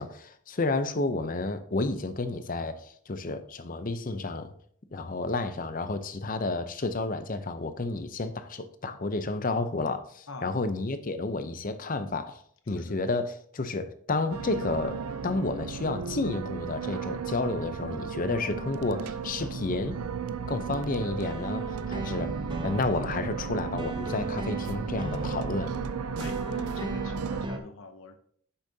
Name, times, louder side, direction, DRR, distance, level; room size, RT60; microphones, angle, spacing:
voice 1, 0.0-4.5 4.9-20.0 20.5-22.3 22.6-25.8, left 3 dB, 35° left, 0.6 m, -31 dB
sound 1, 14.3-27.5, right 6 dB, 90° right, 0.5 m, -34 dB
sound 2, 18.2-27.6, right 1 dB, 20° right, 0.7 m, -40 dB
voice 2, 26.7-28.2, left 3 dB, 65° left, 0.9 m, -44 dB
9.9 x 7.2 x 2.8 m
head